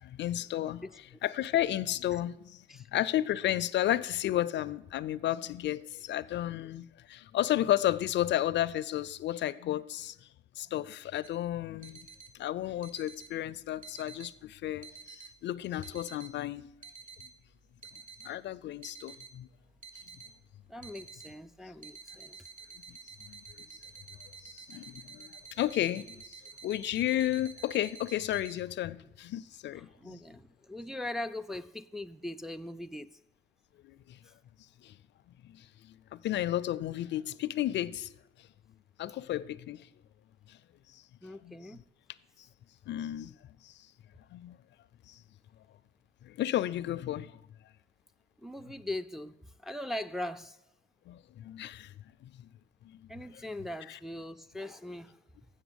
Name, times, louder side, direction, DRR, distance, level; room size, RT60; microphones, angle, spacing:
voice 1, 0.0-0.8 1.2-2.6 2.9-10.2 10.6-12.1 12.3-16.7 18.2-19.5 22.9-23.4 24.4-30.2 33.8-34.2 34.8-34.9 35.5-38.1 39.0-39.8 40.5-40.6 40.9-41.0 41.4-41.6 42.9-43.3 43.6-43.7 44.3-44.6 45.1-45.2 46.2-47.3 51.1-51.9 52.2-52.5 52.8-53.0 53.9-54.0, left 13 dB, 65° left, 0.4 m, -33 dB
sound 1, 11.2-28.5, right 4 dB, 40° right, 0.8 m, -50 dB
voice 2, 20.7-22.4 29.8-33.1 34.2-34.3 41.2-41.8 48.4-49.4 49.6-50.6 53.1-55.2, left 1 dB, ahead, 0.3 m, -40 dB
7.6 x 7.0 x 8.0 m
cardioid pair, 90°, 20 cm